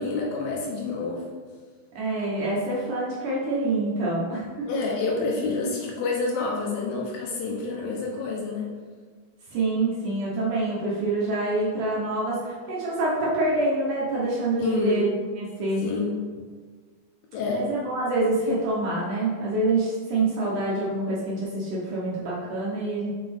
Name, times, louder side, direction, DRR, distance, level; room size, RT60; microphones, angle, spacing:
voice 1, 0.0-1.4 4.7-8.7 14.6-15.0 15.8-16.2 17.3-17.7, left 3 dB, 75° left, -1 dB, 2.5 m, -28 dB
voice 2, 2.0-4.7 9.5-15.1 15.4-15.8 17.5-23.1, right 2 dB, 65° right, -6 dB, 2.2 m, -26 dB
6.0 x 5.8 x 3.5 m, 1.5 s
omnidirectional pair, 4.6 m